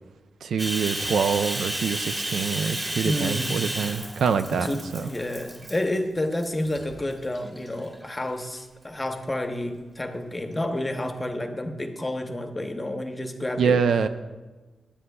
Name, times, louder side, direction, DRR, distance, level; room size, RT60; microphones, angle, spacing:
voice 1, 0.4-4.7 4.9-5.1 13.6-14.1, right 6 dB, 80° right, 0.5 m, -25 dB
Bathtub (filling or washing), 0.6-6.0 6.4-6.8 7.3-8.2, right 1 dB, 25° right, 1.6 m, -32 dB
voice 2, 3.0-3.6 4.5-13.8, left 1 dB, 15° left, 0.8 m, -30 dB
19.0 x 8.6 x 2.3 m
wide cardioid pair, 155°, 0 cm